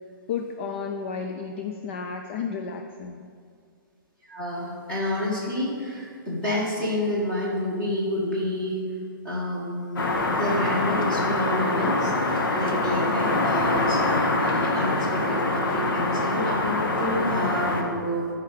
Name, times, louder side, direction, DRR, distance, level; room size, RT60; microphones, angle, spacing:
voice 1, 0.3-3.3, left 6 dB, 35° left, 5 dB, 0.4 m, -32 dB
voice 2, 4.3-8.8 9.2-12.1 12.5-14.0 14.4-18.3, left 1 dB, 10° left, -6 dB, 1.8 m, -29 dB
sound 1, 10.0-17.8, left 2 dB, 70° left, 1.4 m, -24 dB
11.5 x 4.8 x 6.5 m, 2.3 s
hypercardioid pair, 165°, 12 cm